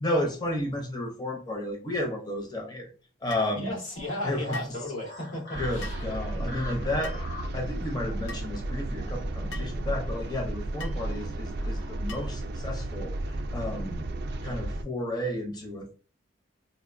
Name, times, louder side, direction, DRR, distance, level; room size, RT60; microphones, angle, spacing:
voice 1, 0.0-2.9 3.2-3.8 4.2-4.8 5.5-7.2 7.5-14.0 14.4-15.9, left 1 dB, 20° left, 2 dB, 0.6 m, -32 dB
sound 1, 3.3-3.5 4.5-4.8 5.8-6.1 7.0-7.3 8.3-8.5 9.5-9.7 10.8-11.0 12.1-12.4, left 2 dB, 65° left, 0.6 m, -41 dB
voice 2, 3.5-6.0, left 1 dB, 85° left, -3 dB, 1.7 m, -35 dB
sound 2, 3.9-12.0, left 2 dB, 45° left, 0.9 m, -46 dB
sound 3, 5.5-14.8, right 1 dB, 50° right, 0.4 m, -33 dB
4.3 x 2.4 x 2.5 m, 0.36 s
head